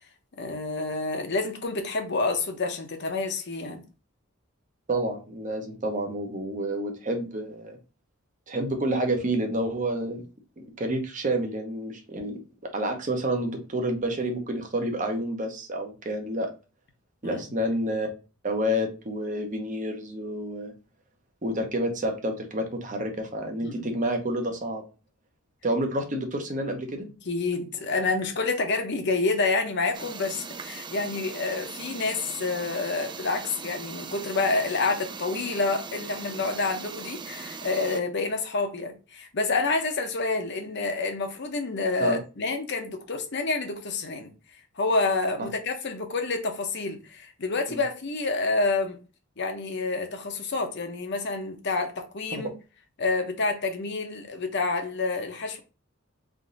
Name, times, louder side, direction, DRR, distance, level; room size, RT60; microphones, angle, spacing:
voice 1, 0.3-3.8 17.2-17.4 23.6-23.9 27.3-49.0 49.4-52.5 53.0-55.6, left 3 dB, 55° left, 0.9 m, -28 dB
voice 2, 4.9-7.8 8.5-10.2 10.6-16.5 17.2-18.1 18.4-20.7 21.4-24.8 25.6-27.1 42.0-42.2 47.7-47.8 52.3-52.4, right 1 dB, 40° right, 0.9 m, -29 dB
sound 1, 29.9-38.0, right 5 dB, 25° right, 0.3 m, -40 dB
3.6 x 2.7 x 3.9 m
head